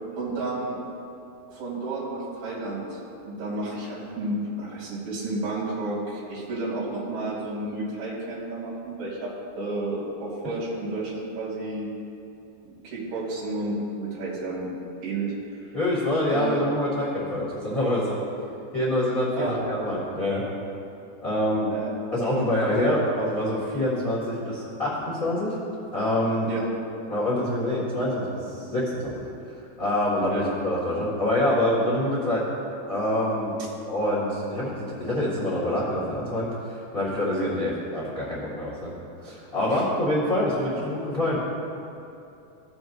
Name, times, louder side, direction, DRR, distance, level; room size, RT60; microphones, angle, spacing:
voice 1, 0.2-0.8 1.5-9.3 9.6-11.9 12.8-14.7 15.0-15.3 16.3-16.6 19.4-19.6 21.7-21.9 22.3-22.5 26.5-26.7 30.3-30.4 39.7-39.8, right 2 dB, 60° right, -7 dB, 4.3 m, -31 dB
voice 2, 15.7-18.2 18.7-20.4 21.2-21.7 22.1-25.5 25.9-26.5 27.1-29.2 29.8-32.4 32.9-33.6 33.8-34.7 35.0-38.9 39.2-41.4, left 1 dB, 55° left, -8 dB, 0.9 m, -26 dB
17.0 x 7.5 x 2.7 m, 2.7 s
omnidirectional pair, 5.2 m